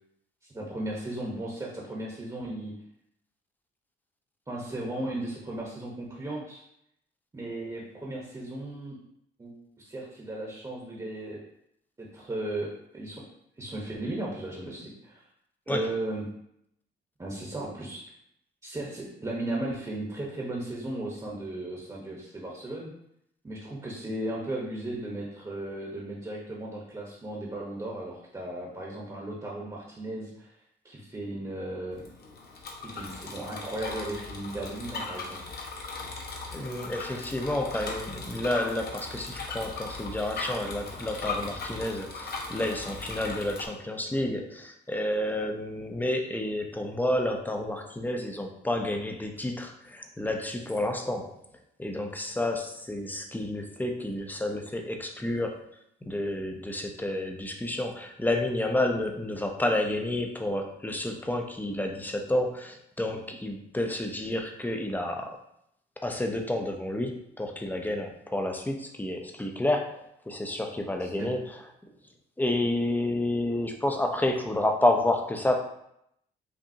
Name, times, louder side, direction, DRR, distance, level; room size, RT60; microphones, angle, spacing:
voice 1, 0.5-2.7 4.5-6.6 7.3-9.0 9.4-11.4 12.0-13.2 13.6-15.2 15.7-16.3 17.2-18.0 18.6-22.9 23.4-30.5 30.8-32.0 32.8-35.4 71.0-71.3, right 1 dB, 20° right, -3 dB, 1.0 m, -36 dB
Bicycle, 31.9-43.7, left 3 dB, 55° left, 0.9 m, -38 dB
voice 2, 36.5-51.3 51.8-55.7 56.0-65.4 66.0-71.6 72.4-75.6, left 1 dB, 10° left, 3 dB, 0.6 m, -30 dB
5.1 x 2.6 x 2.8 m, 0.76 s
cardioid pair, 90°, 20 cm